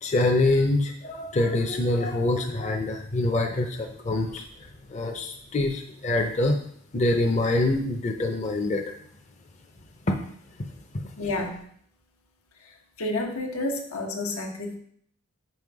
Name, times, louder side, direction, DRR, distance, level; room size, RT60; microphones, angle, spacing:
voice 1, 0.0-4.4 4.9-6.6 6.9-8.8, left 2 dB, 30° left, 2 dB, 0.5 m, -25 dB
voice 2, 11.2-11.7 12.6-14.8, left 2 dB, 90° left, 2 dB, 1.2 m, -30 dB
5.5 x 5.2 x 4.7 m, 0.63 s
head